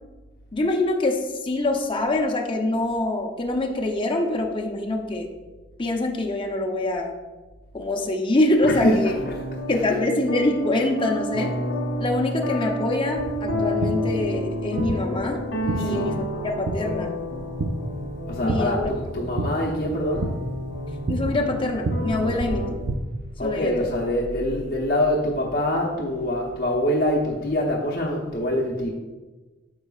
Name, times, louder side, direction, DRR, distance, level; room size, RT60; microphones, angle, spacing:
voice 1, 0.5-5.3 5.8-7.1 7.7-9.1 9.7-11.6 12.0-15.5 15.8-17.2 18.4-18.9 21.1-22.7 23.4-23.9, left 2 dB, 25° left, 1 dB, 0.7 m, -24 dB
voice 2, 8.6-10.0 15.6-16.2 18.3-20.4 22.2-22.4 23.4-28.9, left 1 dB, 55° left, -3 dB, 0.9 m, -25 dB
sound 1, 9.0-22.7, equal, 80° left, 1.4 m, -30 dB
sound 2, 13.2-23.0, right 2 dB, 60° right, 0.5 m, -31 dB
9.6 x 5.9 x 2.4 m, 1.2 s
head